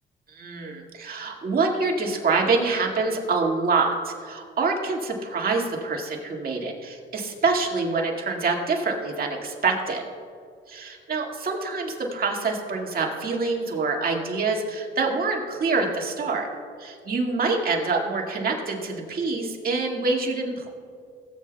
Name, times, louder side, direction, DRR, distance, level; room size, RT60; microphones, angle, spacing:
voice 1, 0.3-10.0 10.7-16.5 16.8-20.7, right 4 dB, 50° right, 0 dB, 1.9 m, -26 dB
18.0 x 8.3 x 2.3 m, 2.3 s
cardioid pair, 90°, 20 cm